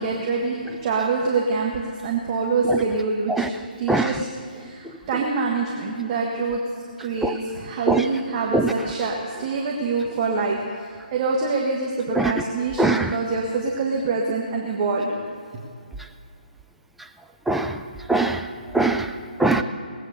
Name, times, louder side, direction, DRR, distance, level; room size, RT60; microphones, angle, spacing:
voice 1, 0.0-3.5 3.8-6.6 7.0-15.1, right 4 dB, 30° right, -2 dB, 1.6 m, -25 dB
voice 2, 12.8-13.1 17.5-17.7 18.1-18.4 18.7-19.1 19.4-19.6, right 2 dB, ahead, 5 dB, 0.5 m, -20 dB
19.5 x 8.9 x 6.5 m, 2.2 s
figure-of-eight pair, 150°, 5 cm